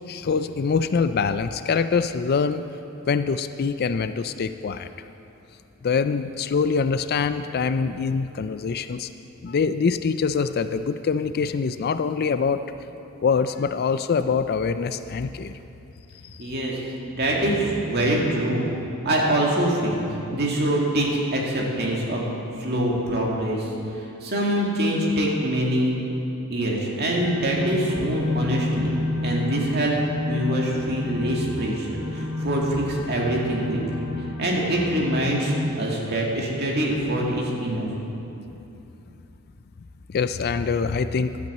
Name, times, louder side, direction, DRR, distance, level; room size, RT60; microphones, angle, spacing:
voice 1, 0.1-2.6 3.1-4.9 5.8-9.1 9.4-12.6 13.2-15.5 16.2-16.4 40.1-41.4, left 5 dB, 45° left, 11 dB, 0.4 m, -24 dB
voice 2, 16.4-18.7 19.0-20.0 20.3-22.2 22.6-26.0 26.5-29.9 30.3-34.1 34.4-37.9, right 1 dB, 45° right, -2 dB, 2.1 m, -24 dB
sound 1, 27.2-35.7, left 2 dB, 75° left, 2.8 m, -31 dB
12.0 x 8.5 x 7.4 m, 2.9 s
head